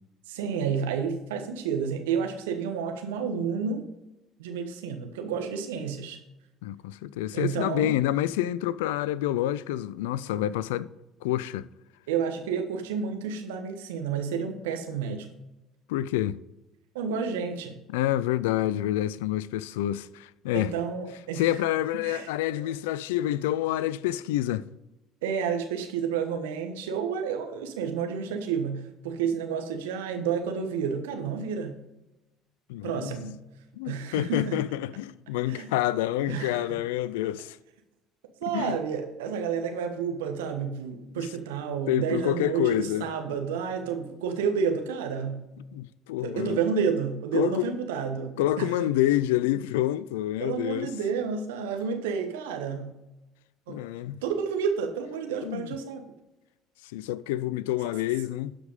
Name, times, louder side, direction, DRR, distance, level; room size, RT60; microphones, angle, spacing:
voice 1, 0.3-3.8 4.4-6.2 7.3-8.0 12.1-15.3 16.9-17.7 20.5-21.5 22.0-22.3 22.6-22.7 25.2-31.7 32.8-33.3 33.8-34.6 35.5-35.7 36.3-36.8 38.4-45.4 46.2-48.9 50.4-52.9 53.7-53.8 54.2-56.0, right 6 dB, 75° right, 1.2 m, -30 dB
voice 2, 6.6-10.9 11.2-11.7 15.9-16.4 17.9-20.7 21.4-24.7 32.7-33.1 33.8-37.6 38.5-38.8 41.1-41.3 41.9-43.1 45.7-46.6 47.3-47.7 48.4-50.9 53.7-54.2 55.4-55.7 56.9-58.6, left 13 dB, 75° left, 0.4 m, -28 dB
12.0 x 5.1 x 5.3 m
hypercardioid pair, 60°, 0 cm